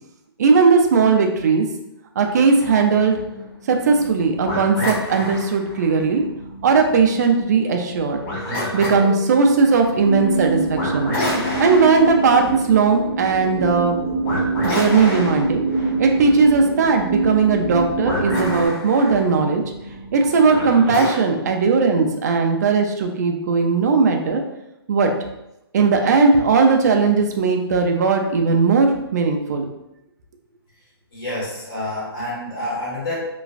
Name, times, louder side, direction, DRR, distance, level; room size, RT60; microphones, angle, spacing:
voice 1, 0.4-1.7 2.2-3.2 3.7-6.2 6.6-8.2 8.7-11.1 11.6-14.0 14.6-15.6 16.0-19.6 20.1-24.4 24.9-25.1 25.7-29.6, right 4 dB, 40° right, 3 dB, 0.4 m, -17 dB
sound 1, 2.5-21.1, left 1 dB, 25° left, 1.2 m, -31 dB
sound 2, 10.0-18.7, right 3 dB, 90° right, 0.5 m, -25 dB
voice 2, 30.7-33.2, left 1 dB, 60° left, -7 dB, 1.5 m, -29 dB
3.0 x 2.4 x 2.3 m, 0.89 s
hypercardioid pair, 165°, 14 cm